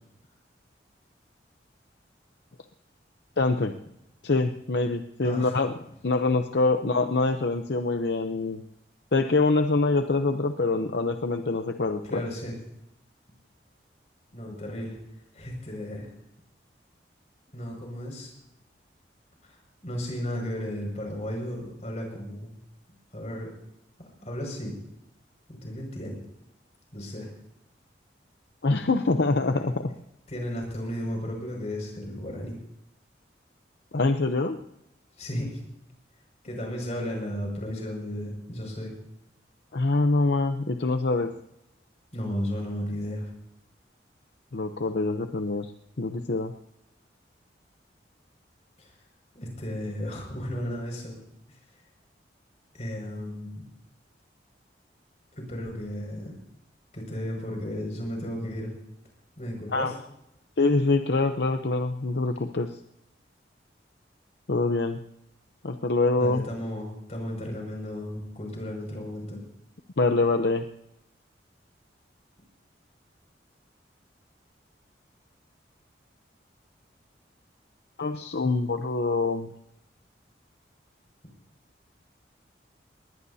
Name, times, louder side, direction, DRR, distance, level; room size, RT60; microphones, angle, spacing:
voice 1, 3.4-3.7 4.2-5.7 6.0-8.6 9.1-12.2 28.6-29.9 33.9-34.6 39.7-41.3 44.5-45.7 46.0-46.5 59.7-59.9 60.6-62.8 64.5-65.0 65.6-66.4 70.0-70.7 78.0-79.5, left 3 dB, 65° left, 7 dB, 0.7 m, -25 dB
voice 2, 12.1-12.6 14.3-15.0 15.3-16.1 17.5-18.3 19.4-22.5 23.1-23.5 24.0-24.8 25.5-26.3 26.9-27.3 30.3-32.5 35.2-35.6 36.4-38.9 42.1-43.3 48.8-48.9 49.3-51.2 51.5-51.6 52.7-53.7 55.3-56.3 56.9-58.7 59.4-59.9 66.2-69.4, equal, 40° left, 0 dB, 6.0 m, -34 dB
21.5 x 19.5 x 2.8 m, 0.82 s
head